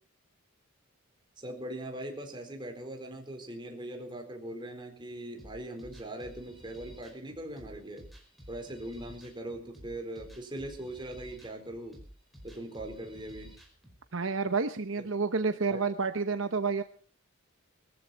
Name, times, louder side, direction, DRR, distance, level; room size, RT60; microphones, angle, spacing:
voice 1, 1.4-8.1 8.5-12.0 12.4-13.5 15.7-15.8, right 1 dB, 20° right, 3 dB, 4.2 m, -41 dB
sound 1, 5.4-14.0, equal, ahead, 4.9 m, -52 dB
voice 2, 14.1-16.8, right 4 dB, 60° right, 9 dB, 0.9 m, -29 dB
21.5 x 14.5 x 4.3 m, 0.42 s
head